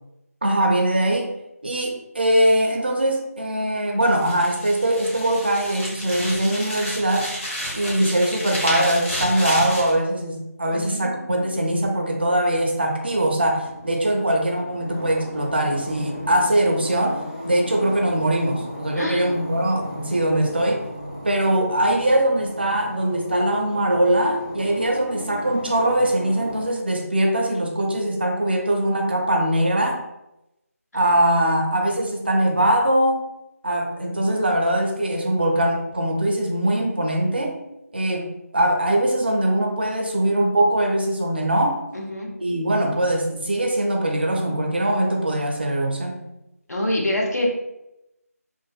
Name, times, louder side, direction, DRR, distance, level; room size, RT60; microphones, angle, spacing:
voice 1, 0.4-1.3 1.6-7.3 7.7-20.8 21.2-30.0 30.9-33.2 33.6-37.5 37.9-41.8 42.4-46.2, right 1 dB, 40° right, 2 dB, 0.4 m, -22 dB
sound 1, 4.0-9.9, equal, 50° left, 1.0 m, -31 dB
voice 2, 10.7-11.5 19.0-19.4 30.9-31.0 41.9-42.3 46.7-47.5, left 1 dB, 80° left, -1 dB, 0.7 m, -26 dB
sound 2, 13.0-26.6, left 1 dB, 25° left, 0.6 m, -37 dB
2.5 x 2.2 x 2.3 m, 0.90 s
figure-of-eight pair, 170°, 9 cm